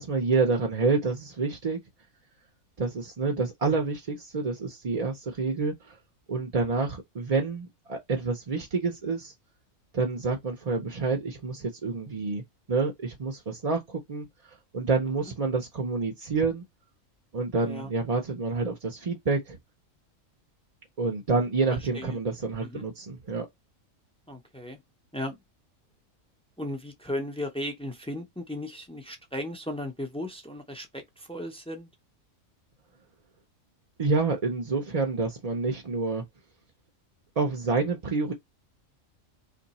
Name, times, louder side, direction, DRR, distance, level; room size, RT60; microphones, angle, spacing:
voice 1, 0.0-1.8 2.8-6.0 6.3-9.3 9.9-12.4 12.7-14.3 14.7-16.6 17.3-19.6 21.0-23.5 34.0-36.2 37.4-38.3, right 4 dB, 40° right, 0.6 m, -28 dB
voice 2, 24.3-24.8 25.1-25.4 26.6-31.9, left 1 dB, 10° left, 0.3 m, -36 dB
2.8 x 2.6 x 4.0 m
omnidirectional pair, 1.4 m